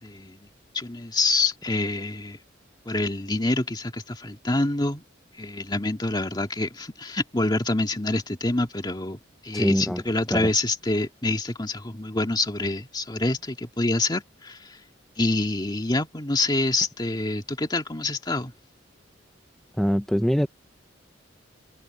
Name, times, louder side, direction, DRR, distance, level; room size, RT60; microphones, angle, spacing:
voice 1, 0.0-0.5 0.7-2.4 2.9-5.0 5.4-14.8 15.2-18.5, left 2 dB, 20° left, 2.0 m, -26 dB
voice 2, 9.5-10.0 10.3-10.5 19.8-20.5, equal, ahead, 0.6 m, -23 dB
head